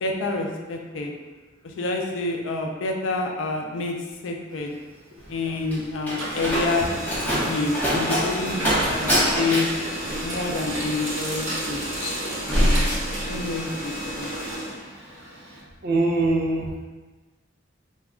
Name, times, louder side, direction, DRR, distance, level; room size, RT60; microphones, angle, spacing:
voice 1, 0.0-1.1 1.6-3.9 4.2-4.7 5.3-7.0 7.3-9.7 10.2-12.2 12.5-12.9 13.2-14.3, left 3 dB, 75° left, 1 dB, 0.4 m, -28 dB
Printer, 4.5-5.8 6.0-15.6, right 1 dB, 85° right, 0.9 m, -32 dB
Slam, 5.2-13.7 14.0-14.4, equal, 10° left, 0.7 m, -26 dB
sound 1, 6.7-10.0 10.7-10.9 11.4-11.9 12.2-13.5, left 1 dB, 50° left, 0.8 m, -40 dB
voice 2, 15.8-16.9, right 2 dB, 50° right, -1 dB, 0.4 m, -23 dB
2.3 x 2.1 x 3.5 m, 1.3 s
head